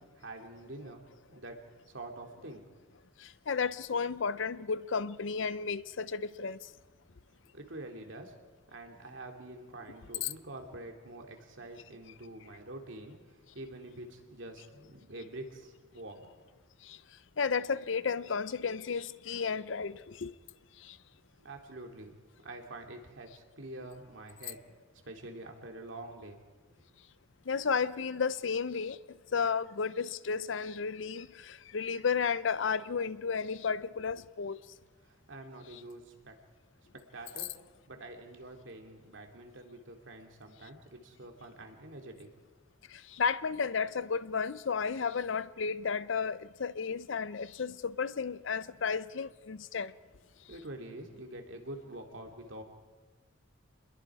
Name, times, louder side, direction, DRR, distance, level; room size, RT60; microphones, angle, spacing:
voice 1, 0.0-2.6 7.5-8.3 8.7-16.3 21.4-24.6 25.1-26.4 35.0-36.4 36.9-37.5 37.9-42.3 50.5-52.6, right 1 dB, 75° right, 2.6 m, -46 dB
voice 2, 3.2-6.6 10.2-10.3 16.9-17.0 17.4-20.3 20.9-21.0 27.5-29.0 29.3-34.6 42.9-49.9, left 5 dB, 70° left, 0.6 m, -33 dB
27.0 x 21.5 x 4.9 m
head